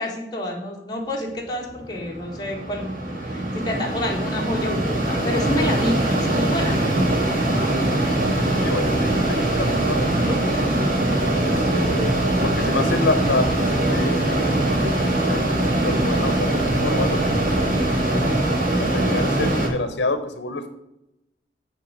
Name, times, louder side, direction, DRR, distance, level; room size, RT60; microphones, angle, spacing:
voice 1, 0.0-2.9 3.2-6.8, left 1 dB, 25° left, -2 dB, 1.5 m, -28 dB
Mechanisms, 1.7-19.7, right 1 dB, 50° right, 1.5 m, -22 dB
voice 2, 8.1-10.8 11.4-12.1 12.4-14.3 14.8-15.4 15.8-17.8 18.1-18.2 18.9-20.7, left 3 dB, 90° left, 8 dB, 0.8 m, -28 dB
9.0 x 3.6 x 6.3 m, 0.88 s
head